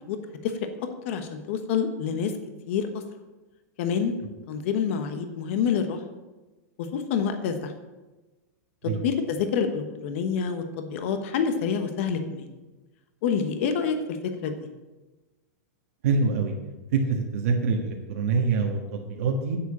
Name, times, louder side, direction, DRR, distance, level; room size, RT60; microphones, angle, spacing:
voice 1, 1.0-2.3 2.7-2.9 3.8-4.1 4.5-6.0 6.8-7.7 9.0-12.5 13.2-14.2 14.4-14.7, left 6 dB, 45° left, 7 dB, 1.2 m, -27 dB
voice 2, 16.0-16.5 16.9-19.6, right 4 dB, 55° right, 1 dB, 1.5 m, -25 dB
10.0 x 7.6 x 7.3 m, 1.2 s
supercardioid pair, 170°, 9 cm